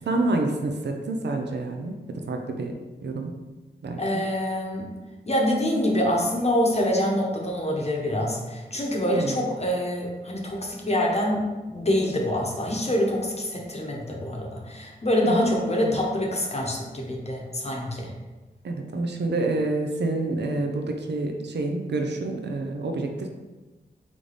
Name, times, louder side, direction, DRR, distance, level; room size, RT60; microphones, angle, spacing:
voice 1, 0.0-2.7 3.0-3.3 3.8-4.0 9.1-9.4 15.2-15.5 15.8-16.0 18.6-23.3, right 2 dB, 75° right, 3 dB, 0.6 m, -28 dB
voice 2, 4.0-4.9 5.3-18.1, left 1 dB, 35° left, -1 dB, 0.8 m, -25 dB
3.5 x 3.3 x 4.0 m, 1.2 s
cardioid pair, 55°, 18 cm